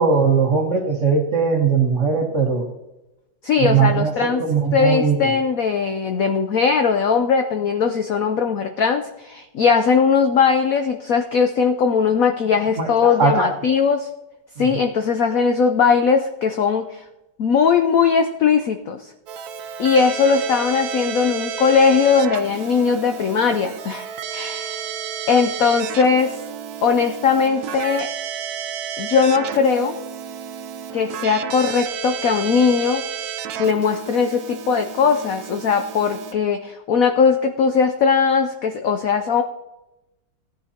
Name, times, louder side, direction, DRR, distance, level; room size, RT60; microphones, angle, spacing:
voice 1, 0.0-2.7 3.6-5.2 12.8-13.5 14.6-14.8, right 5 dB, 40° right, 2 dB, 1.6 m, -19 dB
voice 2, 3.4-4.4 4.7-14.1 14.6-17.0 17.4-19.1 19.8-24.8 25.3-26.4 26.8-28.1 29.0-30.0 30.9-33.3 33.6-39.4, left 5 dB, 65° left, 6 dB, 0.8 m, -19 dB
Keyboard (musical), 19.3-36.3, right 8 dB, 65° right, 1.0 m, -32 dB
17.5 x 10.0 x 2.8 m, 0.96 s
omnidirectional pair, 2.1 m